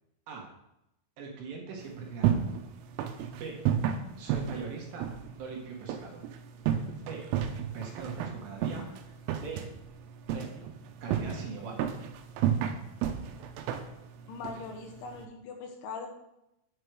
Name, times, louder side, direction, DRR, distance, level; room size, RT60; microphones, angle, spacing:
voice 1, 1.2-2.6 3.3-3.6 4.2-6.2 7.1-7.3 7.7-9.6 10.3-10.7 11.0-11.9, right 5 dB, 70° right, 0 dB, 3.2 m, -41 dB
sound 1, 1.8-15.3, right 9 dB, 85° right, 3.4 m, -33 dB
voice 2, 14.3-16.1, left 4 dB, 75° left, 4 dB, 3.3 m, -41 dB
9.5 x 7.8 x 4.7 m, 0.86 s
omnidirectional pair, 5.8 m